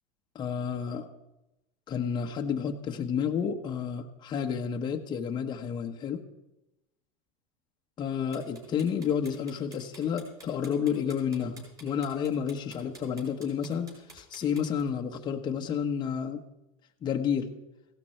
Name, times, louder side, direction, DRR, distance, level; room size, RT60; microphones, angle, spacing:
voice 1, 0.3-1.1 1.9-6.2 8.0-13.9 14.1-16.4 17.0-17.5, left 7 dB, 25° left, 3 dB, 1.1 m, -30 dB
sound 1, 8.3-14.8, right 2 dB, 20° right, 6.3 m, -51 dB
16.5 x 12.0 x 4.5 m, 0.93 s
supercardioid pair, 135°, 18 cm